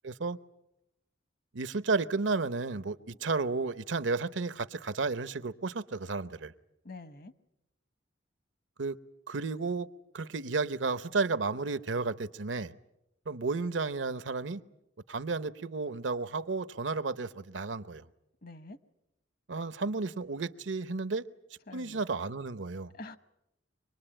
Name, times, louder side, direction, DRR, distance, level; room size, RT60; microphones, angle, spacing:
voice 1, 0.0-0.4 1.5-6.5 8.8-9.0 9.3-9.9 10.1-12.7 13.3-14.6 15.1-18.0 19.5-21.3 21.7-22.9, right 4 dB, 80° right, 0.8 m, -32 dB
voice 2, 6.8-7.3 18.4-18.8 21.7-22.0 22.9-23.2, left 2 dB, 55° left, 1.1 m, -46 dB
25.0 x 20.0 x 8.8 m
head